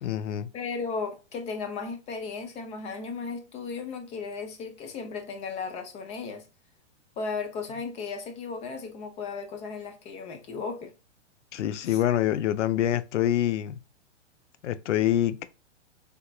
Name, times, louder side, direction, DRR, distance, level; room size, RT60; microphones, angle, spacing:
voice 1, 0.0-0.5 11.5-13.8 14.6-15.5, left 12 dB, 75° left, 0.5 m, -26 dB
voice 2, 0.5-6.4 7.2-10.9 11.8-12.0, left 4 dB, 20° left, 0.6 m, -35 dB
3.5 x 2.9 x 2.4 m
hypercardioid pair, 120°, 36 cm